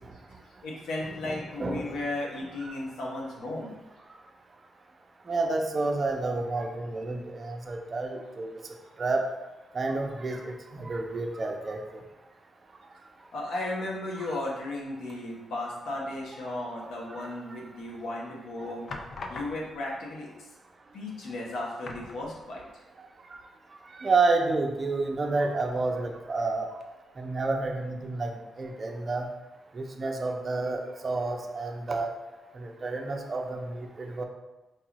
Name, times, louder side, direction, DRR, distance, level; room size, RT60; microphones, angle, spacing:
voice 1, 0.6-3.7 13.3-18.9 19.3-20.3 20.9-22.7, left 2 dB, 85° left, -3 dB, 1.0 m, -35 dB
voice 2, 1.2-2.0 5.3-8.5 9.0-9.3 9.7-12.0 23.9-26.7 27.2-29.3 29.7-32.1 32.5-34.2, right 3 dB, 40° right, 2 dB, 0.6 m, -30 dB
sound 1, 17.6-18.1 18.9-19.9 20.9-21.0 21.3-21.4 21.8-22.8 23.1-23.2 25.6-26.3 26.8-26.9, left 3 dB, 60° left, 0.4 m, -43 dB
4.7 x 2.5 x 2.9 m, 1.1 s
cardioid pair, 75°, 0 cm